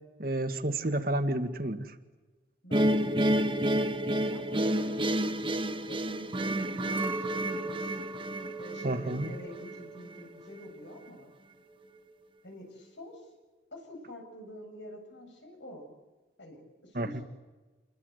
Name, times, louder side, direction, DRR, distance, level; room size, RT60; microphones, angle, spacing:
voice 1, 0.2-1.9 8.8-9.3 16.9-17.2, right 1 dB, 50° right, 7 dB, 1.9 m, -30 dB
voice 2, 2.6-3.6 4.1-5.5 5.9-8.0 8.6-11.3 12.4-13.3 13.7-15.9 16.4-17.2, left 1 dB, 90° left, 4 dB, 8.0 m, -47 dB
sound 1, 2.7-9.8, right 1 dB, 25° right, 1.1 m, -30 dB
Chink clink, 7.0-11.3 11.6-12.4, right 2 dB, 10° right, 2.0 m, -42 dB
28.0 x 22.0 x 8.1 m, 1.2 s
head